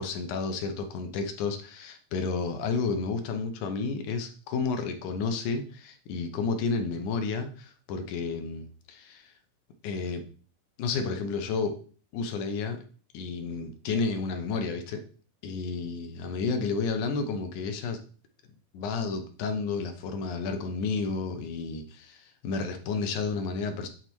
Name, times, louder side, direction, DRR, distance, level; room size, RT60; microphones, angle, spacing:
voice 1, 0.0-9.3 9.8-10.2 10.8-11.8 12.1-12.8 13.1-15.0 15.4-18.0 18.7-23.9, left 4 dB, 75° left, 6 dB, 2.4 m, -31 dB
9.3 x 4.1 x 4.6 m, 0.41 s
omnidirectional pair, 3.8 m